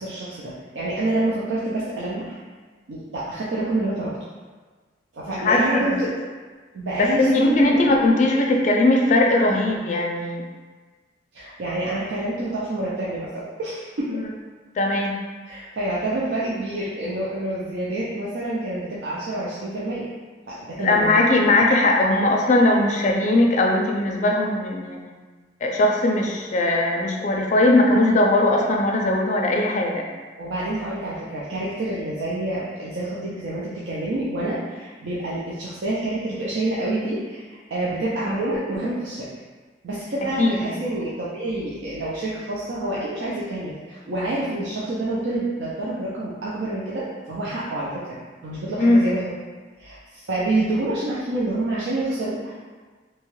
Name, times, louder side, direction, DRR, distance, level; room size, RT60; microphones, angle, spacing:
voice 1, 0.0-2.4 2.9-4.1 5.1-6.1 6.7-7.8 11.3-14.2 15.4-20.1 20.5-21.2 30.4-37.4 37.7-39.3 39.8-48.2 48.4-49.3 49.8-52.5, right 2 dB, 75° right, -7 dB, 0.5 m, -27 dB
voice 2, 5.3-6.0 7.0-10.4 14.1-14.3 14.8-15.2 20.8-25.1 25.6-30.1 40.2-40.7 48.8-49.1, left 2 dB, 40° left, 0 dB, 0.4 m, -19 dB
2.8 x 2.3 x 3.0 m, 1.4 s
head